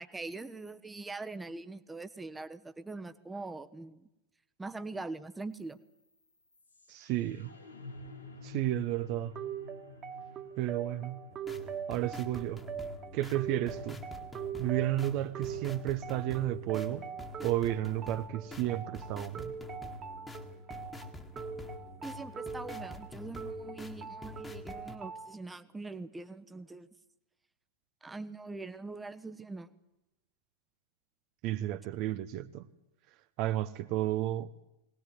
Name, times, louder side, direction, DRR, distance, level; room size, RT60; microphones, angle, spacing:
voice 1, 0.0-4.1 4.6-5.8 22.0-26.9 28.0-29.7, right 3 dB, 10° right, 11 dB, 1.2 m, -42 dB
sound 1, 5.5-15.5, left 3 dB, 80° left, 3.9 m, -52 dB
voice 2, 6.9-7.5 8.4-9.3 10.6-11.2 11.9-12.6 13.1-14.0 14.6-17.1 17.4-19.5 31.4-32.7 33.4-34.5, right 14 dB, 45° right, 10 dB, 0.9 m, -32 dB
sound 2, 9.4-25.3, right 7 dB, 25° right, 1.9 m, -42 dB
sound 3, 11.3-25.0, left 3 dB, 10° left, 1.9 m, -47 dB
21.5 x 18.5 x 9.3 m, 0.93 s
figure-of-eight pair, 90°, 0 cm